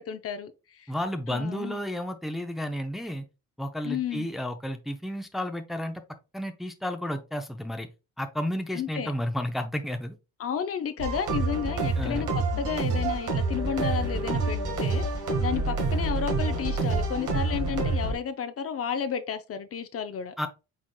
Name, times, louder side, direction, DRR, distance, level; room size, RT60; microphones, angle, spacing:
voice 1, 0.0-0.9 1.3-1.8 3.8-4.3 8.7-9.1 10.4-15.1 15.4-20.3, left 7 dB, 50° left, 0.6 m, -32 dB
voice 2, 0.9-3.3 3.6-6.0 6.3-7.9 8.2-10.2 12.0-12.3 20.4-20.5, left 1 dB, ahead, 0.6 m, -32 dB
sound 1, 11.0-18.1, right 3 dB, 80° right, 1.7 m, -27 dB
4.7 x 4.1 x 2.2 m
cardioid pair, 90°, 30 cm